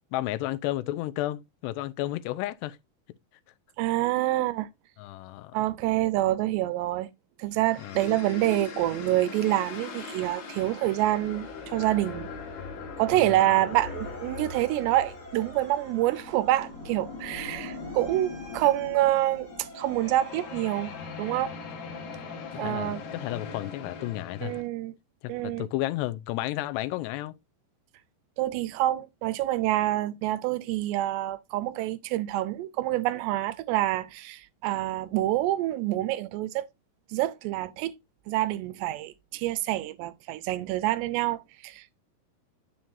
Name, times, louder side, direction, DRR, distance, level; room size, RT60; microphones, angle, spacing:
voice 1, 0.1-2.8 5.0-5.5 7.8-8.0 13.1-13.4 22.5-24.6 25.2-27.4, left 16 dB, 85° left, 2.8 m, -32 dB
voice 2, 3.8-4.7 5.5-7.1 7.4-12.3 13.0-21.6 22.6-23.0 24.4-24.9 25.3-25.7 28.4-36.6 37.1-37.9 38.3-42.0, right 15 dB, 85° right, 2.8 m, -27 dB
sound 1, 7.6-24.6, left 4 dB, 65° left, 3.4 m, -40 dB
Motor vehicle (road) / Siren, 13.1-21.7, equal, 10° left, 5.5 m, -51 dB
8.7 x 7.3 x 2.6 m
omnidirectional pair, 4.8 m